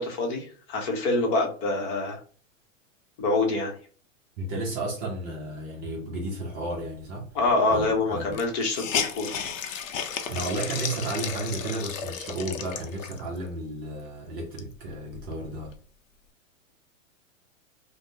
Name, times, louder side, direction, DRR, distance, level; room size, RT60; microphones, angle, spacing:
voice 1, 0.0-2.2 3.2-3.7 7.3-9.5, left 2 dB, 35° left, 0.9 m, -26 dB
voice 2, 4.4-7.3 7.7-8.4 10.3-15.7, right 2 dB, 25° right, 0.6 m, -33 dB
Hiss, 7.5-7.6 7.8-7.9 8.3-13.4 13.9-14.0 14.4-15.8, left 8 dB, 70° left, 0.7 m, -34 dB
3.3 x 2.1 x 2.7 m
hypercardioid pair, 140°, 40 cm